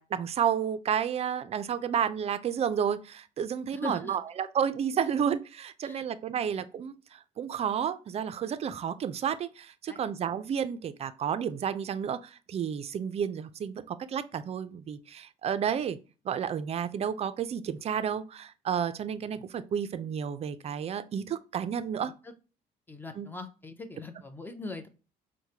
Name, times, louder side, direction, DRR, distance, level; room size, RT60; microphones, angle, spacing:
voice 1, 0.0-6.9 7.4-16.0 16.2-22.1 23.2-23.3, right 8 dB, 40° right, 0.4 m, -31 dB
voice 2, 3.7-4.2 5.8-6.1 9.9-10.0 22.0-22.3 22.9-24.9, left 2 dB, 10° left, 0.6 m, -41 dB
4.6 x 2.1 x 2.8 m
cardioid pair, 110°, 17 cm